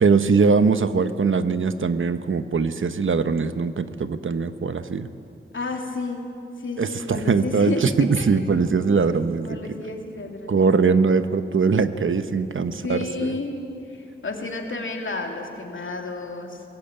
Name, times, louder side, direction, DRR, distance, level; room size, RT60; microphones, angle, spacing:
voice 1, 0.0-5.1 6.8-9.6 10.5-13.3, right 5 dB, 85° right, 11 dB, 0.9 m, -21 dB
voice 2, 5.5-6.2 6.6-7.9 8.2-8.3 9.4-10.7 12.8-13.6 13.8-16.6, left 3 dB, 80° left, 2 dB, 2.8 m, -31 dB
22.0 x 18.0 x 8.9 m, 2.7 s
wide cardioid pair, 80°, 20 cm